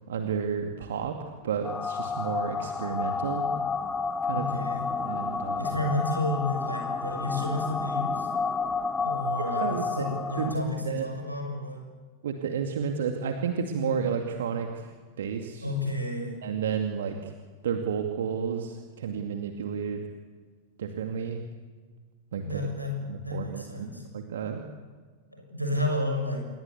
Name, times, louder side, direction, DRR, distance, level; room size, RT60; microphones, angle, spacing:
voice 1, 0.1-1.2 1.4-3.4 4.2-4.5 5.0-5.8 9.6-10.1 10.4-11.1 12.2-14.9 15.2-15.7 16.4-17.3 17.6-20.0 20.8-21.4 22.3-22.7 23.1-23.9 24.1-24.6, right 6 dB, 60° right, 4 dB, 2.3 m, -31 dB
sound 1, 1.6-10.5, left 4 dB, 15° left, 1.5 m, -30 dB
voice 2, 4.3-4.8 5.6-8.3 9.0-11.8 15.6-16.3 22.4-24.0 25.3-26.5, left 1 dB, 90° right, 3 dB, 6.5 m, -31 dB
28.0 x 22.5 x 8.5 m, 1.5 s
figure-of-eight pair, 90°, 0 cm